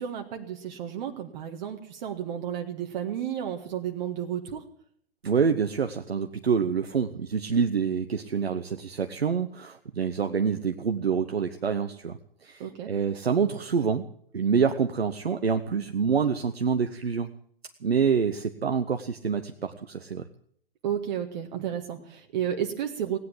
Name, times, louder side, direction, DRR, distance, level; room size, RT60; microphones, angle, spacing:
voice 1, 0.0-4.6 12.6-12.9 20.8-23.2, right 9 dB, 50° right, 3 dB, 1.8 m, -32 dB
voice 2, 5.2-14.0 14.3-17.3 17.8-20.2, right 6 dB, 80° right, 8 dB, 1.0 m, -26 dB
17.5 x 9.8 x 8.5 m, 0.63 s
figure-of-eight pair, 115°, 30 cm